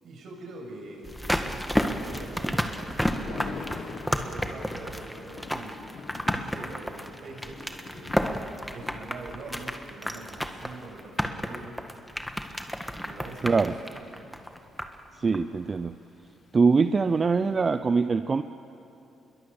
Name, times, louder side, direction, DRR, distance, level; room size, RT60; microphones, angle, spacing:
voice 1, 0.0-5.8 6.3-8.2 8.7-11.8 13.0-14.1, right 3 dB, 65° right, 0 dB, 6.9 m, -43 dB
Thunder, 0.7-17.8, left 5 dB, 55° left, 1.7 m, -47 dB
sound 1, 1.0-15.1 15.3-15.4, equal, ahead, 1.5 m, -32 dB
voice 2, 13.4-13.7 15.2-15.9 16.5-18.4, right 4 dB, 35° right, 10 dB, 0.6 m, -23 dB
27.0 x 22.0 x 7.1 m, 2.9 s
cardioid pair, 90°, 0 cm